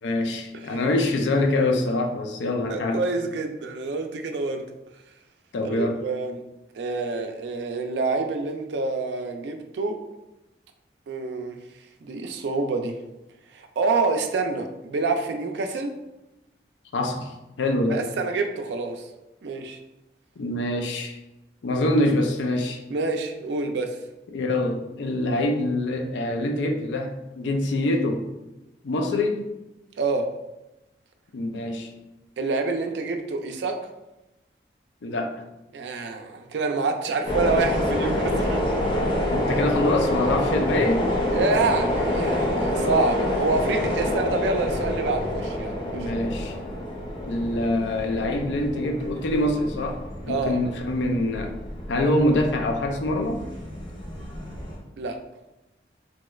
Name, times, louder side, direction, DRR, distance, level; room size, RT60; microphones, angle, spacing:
voice 1, 0.0-3.0 5.5-6.0 16.9-18.0 20.4-21.2 21.6-22.8 24.3-28.2 28.8-29.5 31.3-31.9 35.0-35.4 39.3-41.1 45.9-46.6 47.2-51.5 51.9-53.4, left 1 dB, 80° left, 4 dB, 0.4 m, -25 dB
voice 2, 2.7-4.7 5.6-6.4 6.7-10.0 11.1-11.6 12.0-13.0 13.5-16.0 17.9-19.0 19.4-19.8 22.9-24.0 30.0-30.3 32.4-33.8 35.7-38.6 41.3-46.1 50.3-50.6 55.0-55.2, right 3 dB, 75° right, 5 dB, 0.3 m, -27 dB
sound 1, 37.3-54.8, left 1 dB, 25° left, 0.6 m, -27 dB
2.9 x 2.3 x 3.1 m, 0.98 s
head